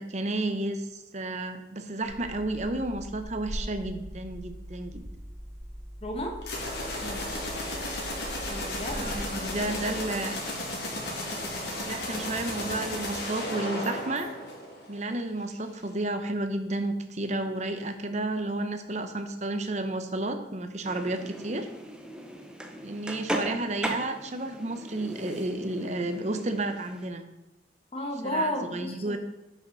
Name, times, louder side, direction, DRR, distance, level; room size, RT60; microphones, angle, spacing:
voice 1, 0.0-5.0 7.0-7.2 8.9-10.4 11.9-14.3 14.9-21.7 22.8-27.2 28.2-29.2, right 2 dB, 35° right, 8 dB, 0.7 m, -32 dB
sound 1, 2.0-10.0, equal, 10° left, 2.0 m, -41 dB
voice 2, 6.0-6.4 8.5-9.1 27.9-29.2, equal, 30° left, 2 dB, 1.2 m, -32 dB
sound 2, 6.4-15.1, left 1 dB, 60° left, 1.9 m, -34 dB
sound 3, 20.8-27.1, equal, 5° right, 0.7 m, -38 dB
11.0 x 5.7 x 4.0 m, 0.98 s
head